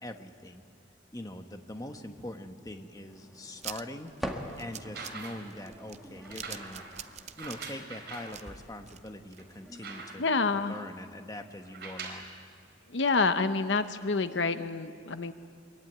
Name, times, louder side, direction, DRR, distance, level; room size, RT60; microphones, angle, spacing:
voice 1, 0.0-0.6 1.1-4.1 4.6-6.9 7.4-10.2 10.5-12.3, left 1 dB, 20° left, 6 dB, 1.1 m, -42 dB
sound 1, 3.1-12.0, equal, ahead, 1.8 m, -46 dB
sound 2, 3.6-9.7 10.1-10.2 10.4-10.5, right 10 dB, 35° right, 0.6 m, -45 dB
sound 3, 4.8-5.6 6.2-8.4 9.0-9.1 9.4-10.4 11.6-12.3 13.3-13.4, right 4 dB, 55° right, 4.2 m, -44 dB
voice 2, 10.2-10.7 12.9-15.3, left 4 dB, 70° left, 10 dB, 0.9 m, -28 dB
24.0 x 23.0 x 9.3 m, 2.3 s
head